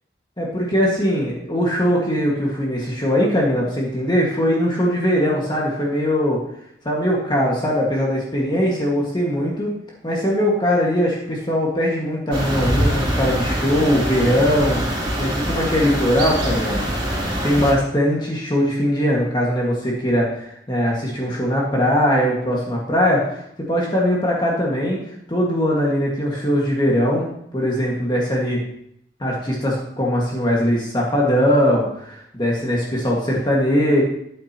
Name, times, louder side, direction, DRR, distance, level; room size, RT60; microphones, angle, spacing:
voice 1, 0.4-6.4 6.9-9.7 10.0-14.8 15.2-16.9 17.4-23.4 23.7-25.0 25.3-27.3 27.5-28.6 29.2-34.0, equal, 25° left, -3 dB, 1.8 m, -20 dB
sound 1, 12.3-17.7, equal, 30° right, 2.9 m, -23 dB
12.5 x 9.2 x 2.9 m, 0.74 s
head